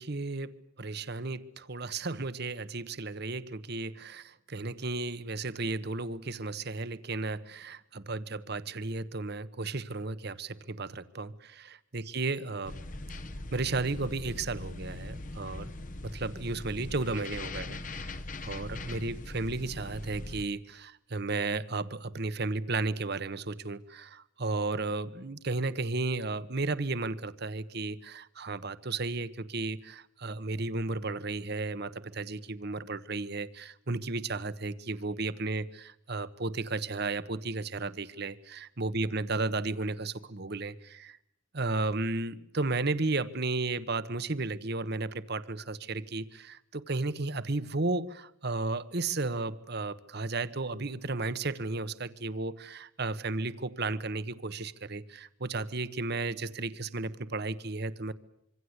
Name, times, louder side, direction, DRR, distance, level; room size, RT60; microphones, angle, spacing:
voice 1, 0.0-12.8 13.5-15.7 16.0-41.2 41.5-58.1, right 3 dB, 50° right, 14 dB, 1.2 m, -34 dB
sound 1, 12.7-20.4, left 2 dB, 40° left, 1.0 m, -41 dB
26.0 x 25.0 x 8.2 m, 0.78 s
head